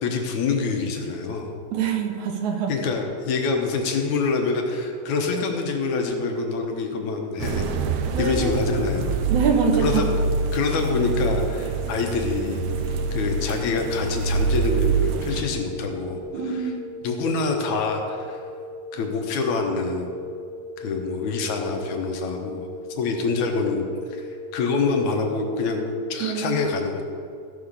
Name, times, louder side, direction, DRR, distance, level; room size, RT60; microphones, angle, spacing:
voice 1, 0.0-1.5 2.7-7.7 8.2-9.2 9.7-10.2 10.5-12.6 13.1-16.2 16.5-16.7 17.0-18.4 18.9-20.1 20.8-22.7 23.0-27.0, left 4 dB, 70° left, 3 dB, 2.3 m, -26 dB
voice 2, 1.7-2.7 8.1-8.8 9.3-10.1 16.3-16.8 26.2-26.7, right 6 dB, 70° right, 4 dB, 2.3 m, -25 dB
sound 1, 7.4-15.4, right 5 dB, 90° right, 1.3 m, -26 dB
sound 2, 9.7-26.2, left 2 dB, 35° left, 1.8 m, -38 dB
14.5 x 5.7 x 6.7 m, 2.5 s
omnidirectional pair, 3.8 m